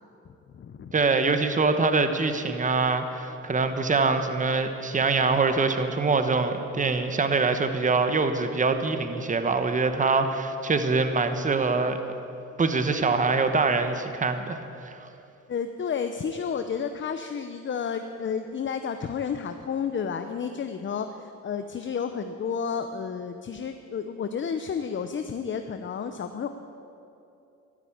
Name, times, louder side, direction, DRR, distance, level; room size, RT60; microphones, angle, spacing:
voice 1, 0.3-0.9 15.5-26.5, left 6 dB, 40° left, 8 dB, 0.8 m, -31 dB
voice 2, 0.9-12.0 12.6-15.0, right 4 dB, 25° right, 8 dB, 1.2 m, -24 dB
12.5 x 12.5 x 8.7 m, 2.8 s
cardioid pair, 90°, 30 cm